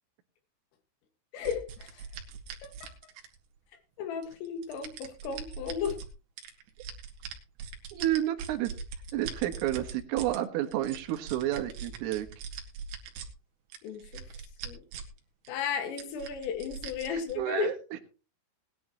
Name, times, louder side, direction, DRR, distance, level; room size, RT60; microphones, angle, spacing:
voice 1, 1.3-2.1 2.6-2.9 4.0-6.0 13.8-14.2 14.6-14.8 15.5-17.7, left 7 dB, 80° left, 7 dB, 4.5 m, -34 dB
sound 1, 1.4-3.6 4.2-6.1 6.4-10.4 10.7-13.3 13.7-15.2 15.4-15.5 16.0-17.3, right 7 dB, 65° right, 3.6 m, -41 dB
voice 2, 7.9-8.7 9.1-12.3 17.1-17.8, right 13 dB, 80° right, 6 dB, 3.9 m, -30 dB
19.5 x 11.0 x 3.0 m, 0.34 s
omnidirectional pair, 5.8 m